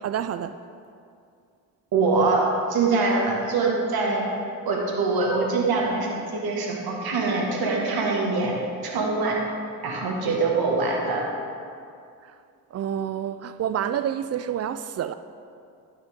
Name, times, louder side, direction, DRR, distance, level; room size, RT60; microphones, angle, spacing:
voice 1, 0.0-0.6 12.2-12.4 12.7-15.1, right 9 dB, 40° right, 0.4 m, -28 dB
voice 2, 1.9-2.4 2.7-4.3 4.7-8.5 8.8-9.4 9.8-11.2, right 3 dB, 60° right, 2.0 m, -24 dB
12.0 x 6.0 x 3.7 m
hypercardioid pair, 60°, 41 cm